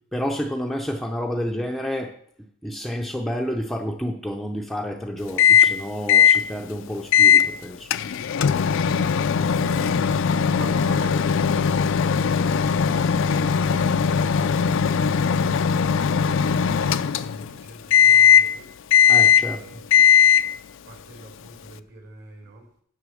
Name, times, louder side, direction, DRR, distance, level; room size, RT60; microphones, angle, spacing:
voice 1, 0.1-2.1 2.6-7.9 19.1-19.6, equal, ahead, 2 dB, 0.6 m, -29 dB
Microwave oven, 5.4-5.8 6.1-6.4 7.1-7.5 7.9-17.5 17.9-18.5 18.9-19.6 19.9-20.5, left 8 dB, 65° left, 0.4 m, -18 dB
voice 2, 8.8-18.7 19.4-20.3 20.8-22.7, right 2 dB, 50° right, 1 dB, 3.1 m, -45 dB
8.4 x 6.5 x 6.3 m, 0.64 s
head